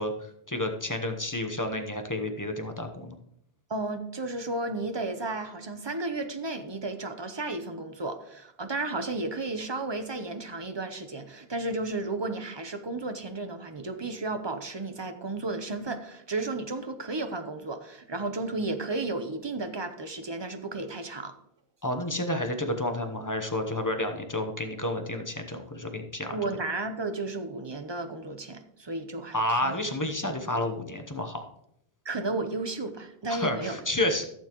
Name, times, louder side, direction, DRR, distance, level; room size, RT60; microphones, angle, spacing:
voice 1, 0.0-3.1 21.8-26.4 29.3-31.4 33.3-34.2, left 1 dB, 20° left, 4 dB, 0.9 m, -30 dB
voice 2, 3.7-21.4 26.3-29.8 32.0-33.8, right 2 dB, 30° right, 8 dB, 0.7 m, -33 dB
15.0 x 7.0 x 3.0 m, 0.76 s
omnidirectional pair, 1.0 m